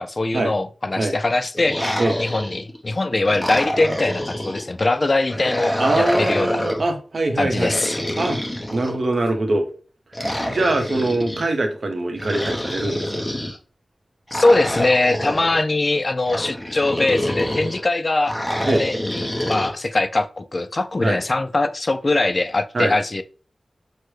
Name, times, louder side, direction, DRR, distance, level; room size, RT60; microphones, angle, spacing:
voice 1, 0.0-6.7 7.4-8.0 14.3-18.3 18.8-23.2, left 2 dB, 40° left, 0.3 m, -22 dB
sound 1, 1.5-2.8 3.2-4.7 5.3-6.9 7.5-9.2 10.1-11.5 12.2-13.6 14.3-15.6 16.3-17.8 18.2-19.7, equal, 15° left, 0.8 m, -26 dB
voice 2, 5.8-7.7 8.2-8.4 8.7-9.7 10.4-13.3 18.6-18.8 21.0-21.2 22.7-22.9, right 2 dB, 60° right, 0.8 m, -23 dB
6.2 x 2.1 x 3.1 m
wide cardioid pair, 100°, 0 cm